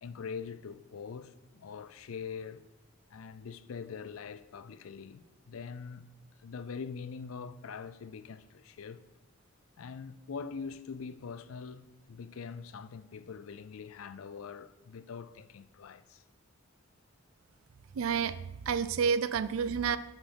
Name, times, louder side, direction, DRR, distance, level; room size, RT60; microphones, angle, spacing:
voice 1, 0.0-2.6 3.1-6.1 6.4-9.0 9.8-16.2, left 5 dB, 80° left, 0.4 m, -43 dB
voice 2, 17.9-20.0, right 6 dB, 80° right, 0.4 m, -30 dB
7.1 x 5.7 x 5.3 m
head